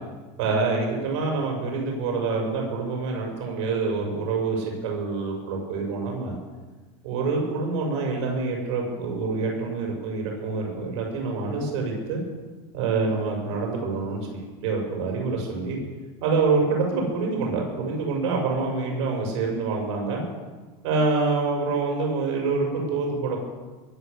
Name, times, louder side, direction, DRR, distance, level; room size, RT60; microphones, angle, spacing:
voice 1, 0.4-6.4 7.0-12.2 12.7-15.8 16.2-20.2 20.8-23.4, right 4 dB, 80° right, 0 dB, 7.0 m, -26 dB
22.5 x 9.2 x 7.0 m, 1.3 s
supercardioid pair, 140°, 15 cm